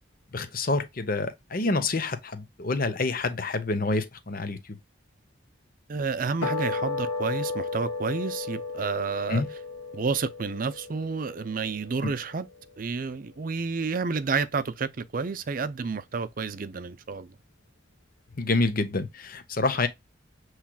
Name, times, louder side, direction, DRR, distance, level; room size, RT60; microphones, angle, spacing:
voice 1, 0.3-4.8 9.3-9.5 18.4-19.9, left 3 dB, 50° left, 0.8 m, -27 dB
voice 2, 5.9-9.4 9.9-12.5 12.8-17.3, right 4 dB, 45° right, 0.5 m, -30 dB
sound 1, 6.4-12.9, left 3 dB, 80° left, 1.4 m, -34 dB
7.2 x 3.2 x 2.3 m
head